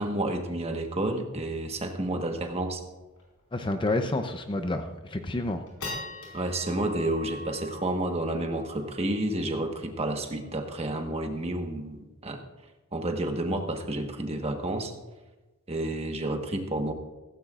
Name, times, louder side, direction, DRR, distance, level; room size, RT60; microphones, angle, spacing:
voice 1, 0.0-2.8 6.3-12.4 12.9-14.9 15.7-16.9, right 1 dB, 30° right, 4 dB, 1.3 m, -30 dB
sound 1, 2.3-2.4 2.7-2.8 3.2-3.4 3.9-4.0 4.5-4.9 5.3-11.9, left 2 dB, 85° left, 4.9 m, -43 dB
voice 2, 3.5-5.6, left 2 dB, 25° left, 7 dB, 0.6 m, -29 dB
16.0 x 15.0 x 2.5 m, 1.1 s
head